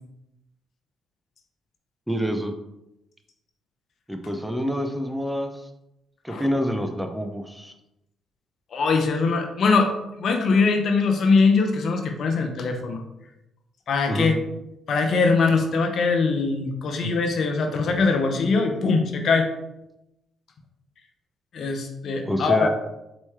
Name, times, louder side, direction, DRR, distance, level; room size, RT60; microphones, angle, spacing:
voice 1, 2.1-2.5 4.1-5.5 6.2-7.7 14.1-14.3 17.0-17.1 22.2-22.7, equal, 5° right, 5 dB, 0.6 m, -27 dB
voice 2, 8.7-13.0 13.9-14.3 14.9-19.5 21.5-22.7, left 4 dB, 60° left, 4 dB, 0.7 m, -22 dB
4.2 x 3.0 x 3.5 m, 0.89 s
supercardioid pair, 55°, 0 cm